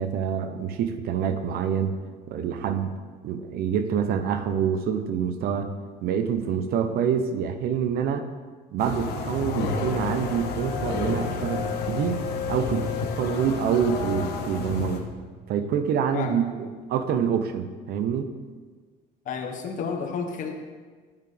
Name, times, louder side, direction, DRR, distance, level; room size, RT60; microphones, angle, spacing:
voice 1, 0.0-2.0 2.3-3.0 3.2-5.7 6.0-8.3 8.7-12.2 12.5-15.0 15.5-16.4 16.9-18.3, right 8 dB, 60° right, 9 dB, 0.8 m, -26 dB
sound 1, 8.8-15.0, left 5 dB, 65° left, 1.3 m, -30 dB
voice 2, 19.2-20.5, left 5 dB, 45° left, 3 dB, 1.3 m, -31 dB
11.5 x 10.5 x 3.4 m, 1.4 s
cardioid pair, 155°, 18 cm